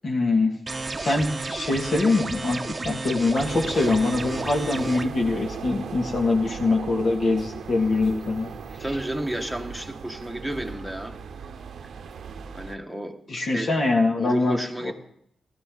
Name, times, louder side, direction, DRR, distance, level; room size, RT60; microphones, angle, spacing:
voice 1, 0.0-0.5 1.0-8.5 13.3-14.9, left 3 dB, 55° left, 2.4 m, -23 dB
sound 1, 0.7-5.1, right 3 dB, 30° right, 0.8 m, -32 dB
sound 2, 3.3-12.8, right 6 dB, 70° right, 0.7 m, -38 dB
voice 2, 8.8-11.2 12.5-13.7 14.2-14.9, right 1 dB, ahead, 1.4 m, -32 dB
15.5 x 12.5 x 4.0 m
cardioid pair, 60°, 0 cm